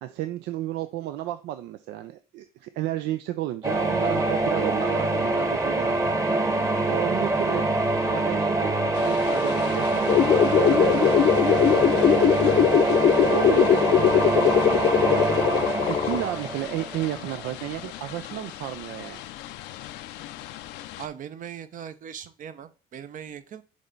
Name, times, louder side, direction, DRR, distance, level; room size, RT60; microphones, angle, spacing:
voice 1, 0.0-19.2, right 13 dB, 85° right, 11 dB, 0.5 m, -33 dB
sound 1, 3.6-17.5, right 2 dB, 20° right, 1.1 m, -25 dB
sound 2, 8.9-21.1, left 13 dB, 90° left, 0.6 m, -40 dB
sound 3, 10.1-16.2, left 9 dB, 45° left, 0.6 m, -20 dB
voice 2, 21.0-23.6, right 8 dB, 50° right, 12 dB, 0.7 m, -39 dB
6.4 x 3.3 x 5.3 m, 0.34 s
cardioid pair, 110°, 17 cm